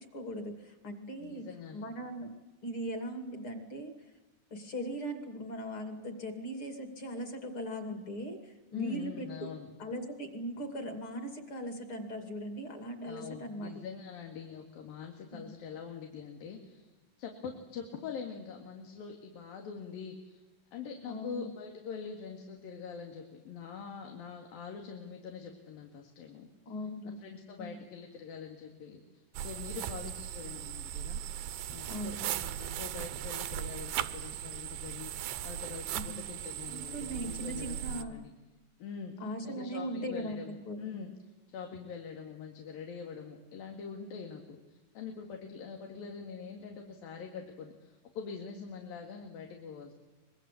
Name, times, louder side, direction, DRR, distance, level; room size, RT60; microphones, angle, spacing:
voice 1, 0.1-1.5 1.7-2.3 2.6-3.9 4.5-9.5 9.8-13.7 15.3-15.5 21.1-21.4 26.7-27.2 27.6-27.8 31.9-32.3 35.9-36.3 36.7-38.2 39.2-40.9, equal, 40° left, 6 dB, 3.0 m, -39 dB
voice 2, 1.2-1.8 8.7-9.7 13.1-16.9 17.2-20.4 20.7-26.5 27.1-31.2 31.7-38.3 38.8-39.2 39.4-41.1 41.5-49.9, left 6 dB, 80° left, 3 dB, 3.8 m, -44 dB
sound 1, 29.3-38.0, right 11 dB, 85° right, 2.8 m, -38 dB
24.5 x 22.5 x 8.4 m, 1.1 s
omnidirectional pair, 4.1 m